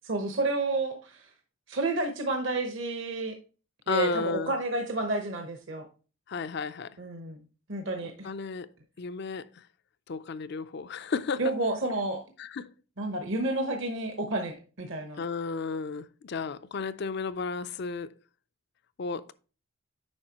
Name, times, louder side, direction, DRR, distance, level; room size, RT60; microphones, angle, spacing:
voice 1, 0.0-1.3 1.7-3.3 3.9-5.9 7.0-7.4 7.7-8.3 11.4-12.2 13.0-15.2, right 2 dB, 60° right, 1.0 m, -30 dB
voice 2, 3.9-4.5 6.3-7.0 8.2-8.7 9.0-9.6 10.1-11.4 12.4-12.7 15.2-18.1 19.0-19.3, left 5 dB, 50° left, 0.4 m, -33 dB
8.7 x 5.6 x 2.9 m
head